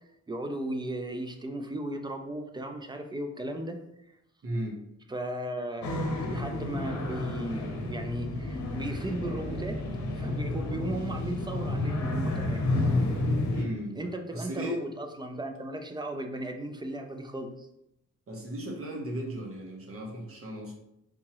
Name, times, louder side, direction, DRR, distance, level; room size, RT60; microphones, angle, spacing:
voice 1, 0.3-3.8 5.1-9.8 10.2-12.6 14.0-17.7, right 1 dB, 15° right, 5 dB, 0.3 m, -36 dB
voice 2, 4.4-4.8 13.5-14.8 18.3-20.7, right 1 dB, 50° right, 0 dB, 0.9 m, -36 dB
sound 1, 5.8-13.6, left 2 dB, 70° left, 0.7 m, -30 dB
3.6 x 2.9 x 2.9 m, 0.82 s
wide cardioid pair, 120°, 29 cm